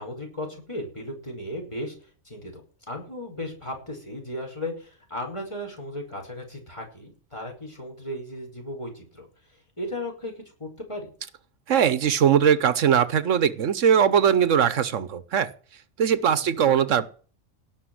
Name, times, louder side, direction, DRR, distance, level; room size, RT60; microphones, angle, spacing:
voice 1, 0.0-2.0 2.3-2.6 2.9-9.3 9.8-11.1 16.4-16.7, left 1 dB, 25° left, 2 dB, 5.2 m, -36 dB
voice 2, 11.7-15.5 16.0-17.1, right 8 dB, 80° right, 15 dB, 1.3 m, -20 dB
17.5 x 6.7 x 7.9 m, 0.40 s
omnidirectional pair, 1.3 m